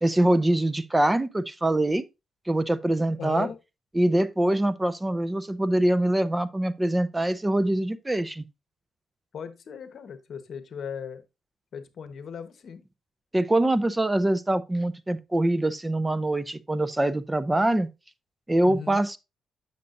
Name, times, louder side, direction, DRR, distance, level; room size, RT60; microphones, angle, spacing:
voice 1, 0.0-2.0 2.5-3.5 3.9-8.4 13.3-17.9 18.5-19.2, right 1 dB, 15° right, 0.6 m, -24 dB
voice 2, 3.1-3.6 9.3-11.2 11.7-12.8 18.6-19.0, left 7 dB, 60° left, 1.1 m, -37 dB
8.3 x 6.6 x 2.6 m
cardioid pair, 95°, 0 cm